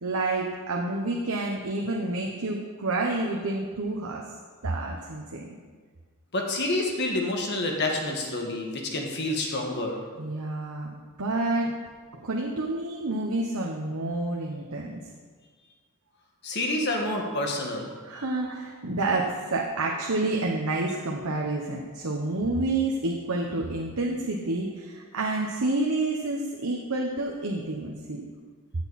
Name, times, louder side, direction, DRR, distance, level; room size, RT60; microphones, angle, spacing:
voice 1, 0.0-4.2 4.6-5.5 10.2-11.7 12.1-15.0 18.0-28.3, right 2 dB, 85° right, -1 dB, 1.1 m, -29 dB
voice 2, 6.3-10.0 16.4-17.9, left 2 dB, 50° left, 1 dB, 1.7 m, -28 dB
15.5 x 8.0 x 4.2 m, 1.5 s
head